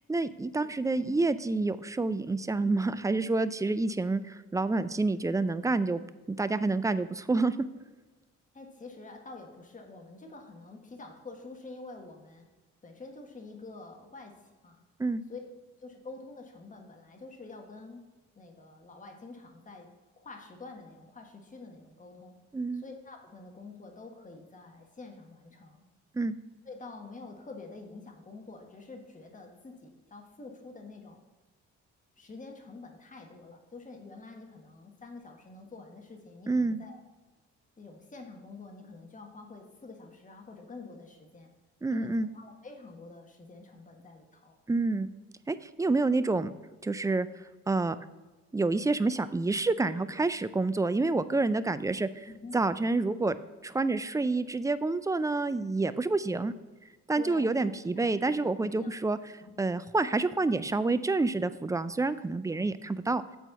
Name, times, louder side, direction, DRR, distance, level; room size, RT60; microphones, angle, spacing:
voice 1, 0.1-6.0 6.3-7.6 15.0-15.2 22.5-22.8 26.1-26.3 36.5-36.8 41.8-42.3 44.7-45.1 45.5-46.5 46.8-47.3 47.7-48.0 48.5-52.3 52.5-53.4 53.6-56.5 57.1-63.2, right 3 dB, 10° right, 13 dB, 0.4 m, -28 dB
voice 2, 8.5-12.5 12.8-14.8 15.3-15.4 15.8-18.0 18.3-19.9 20.2-22.3 22.7-25.8 26.6-31.2 32.2-37.0 37.8-41.5 41.9-44.6 52.3-52.6 57.2-57.5 58.0-58.9 59.3-59.5, left 3 dB, 25° left, 2 dB, 1.5 m, -47 dB
8.3 x 4.4 x 6.6 m, 1.2 s
cardioid pair, 90°, 30 cm